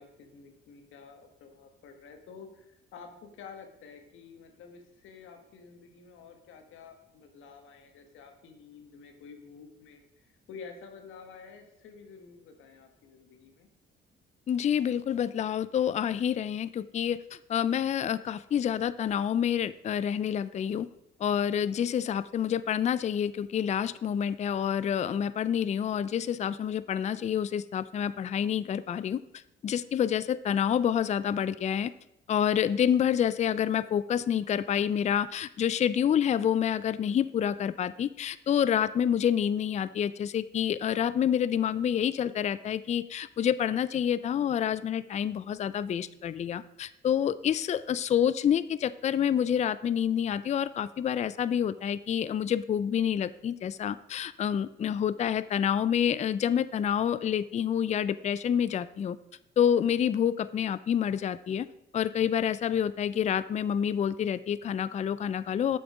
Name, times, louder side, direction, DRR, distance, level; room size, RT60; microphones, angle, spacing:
voice 1, 0.0-13.7, left 5 dB, 80° left, 5 dB, 1.3 m, -50 dB
voice 2, 14.5-20.9 21.2-29.2 29.6-31.9 32.3-59.2 59.6-61.7 61.9-65.8, left 9 dB, 35° left, 15 dB, 0.4 m, -28 dB
7.8 x 6.2 x 4.8 m, 0.83 s
cardioid pair, 90°, 20 cm